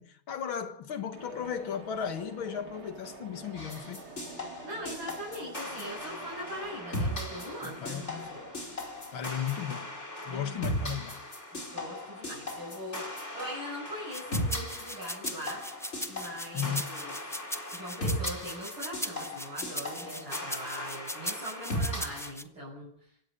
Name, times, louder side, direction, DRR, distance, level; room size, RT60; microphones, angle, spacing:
voice 1, 0.0-4.0 7.6-8.3 9.1-10.0 10.3-11.2 16.5-16.8, left 8 dB, 75° left, 2.4 m, -35 dB
sound 1, 1.1-9.8, right 4 dB, 90° right, 4.5 m, -49 dB
sound 2, 3.6-22.3, equal, 30° left, 5.2 m, -37 dB
voice 2, 4.6-8.5 10.3-10.7 11.5-15.6 16.1-17.1 17.7-22.9, equal, 70° right, 8.2 m, -41 dB
sound 3, 14.1-22.4, equal, 5° left, 0.6 m, -38 dB
25.5 x 16.5 x 6.8 m
omnidirectional pair, 2.3 m